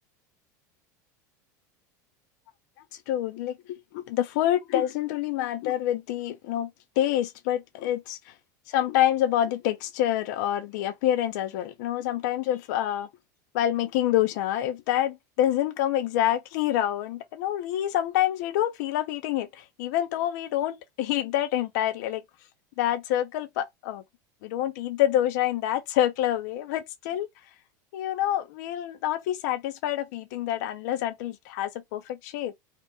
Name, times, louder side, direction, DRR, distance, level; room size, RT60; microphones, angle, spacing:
voice 1, 2.9-6.7 7.0-8.3 8.7-13.1 13.5-22.2 22.8-24.0 24.4-27.3 27.9-32.5, left 12 dB, 70° left, 0.4 m, -27 dB
2.8 x 2.1 x 3.3 m
hypercardioid pair, 105°, 10 cm